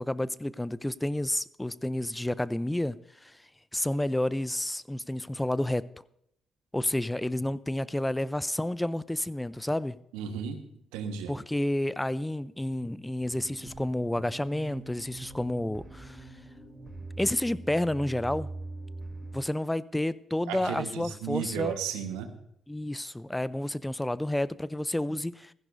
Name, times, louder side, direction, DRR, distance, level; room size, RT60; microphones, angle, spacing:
voice 1, 0.0-3.0 3.2-3.4 3.7-5.8 6.7-10.0 11.3-16.2 17.2-18.5 19.3-21.8 22.7-25.5, left 1 dB, 10° left, 0.5 m, -30 dB
voice 2, 10.1-10.6 10.9-11.3 20.5-22.3, right 7 dB, 80° right, 1.3 m, -34 dB
sound 1, 13.2-19.4, right 2 dB, 25° right, 3.0 m, -43 dB
16.0 x 15.0 x 2.7 m
hypercardioid pair, 45°, 0 cm